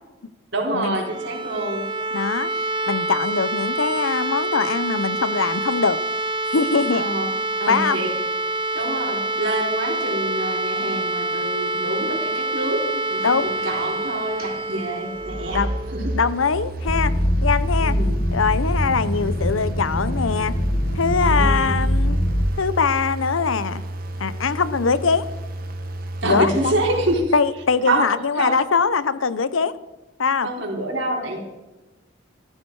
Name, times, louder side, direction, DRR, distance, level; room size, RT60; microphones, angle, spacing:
voice 1, 0.5-1.9 6.9-7.3 7.6-8.1 8.7-15.6 15.9-16.1 17.8-18.2 21.3-21.7 26.2-27.3 27.8-28.6 30.4-31.4, right 1 dB, 65° right, -1 dB, 4.2 m, -26 dB
sound 1, 0.9-16.7, right 2 dB, 25° right, 0.9 m, -27 dB
voice 2, 2.1-2.5 2.8-6.0 6.5-7.0 7.7-8.0 13.2-13.5 15.5-15.7 16.2-17.1 17.4-17.9 18.3-20.6 20.9-22.2 22.6-23.8 24.2-25.3 26.2-26.7 27.3-29.7 30.2-30.5, left 5 dB, 85° left, 16 dB, 0.8 m, -22 dB
sound 2, 13.1-27.1, right 1 dB, 45° right, 1.5 m, -32 dB
sound 3, 16.9-22.4, equal, 45° left, 1.8 m, -22 dB
15.5 x 14.5 x 4.8 m, 1.1 s
head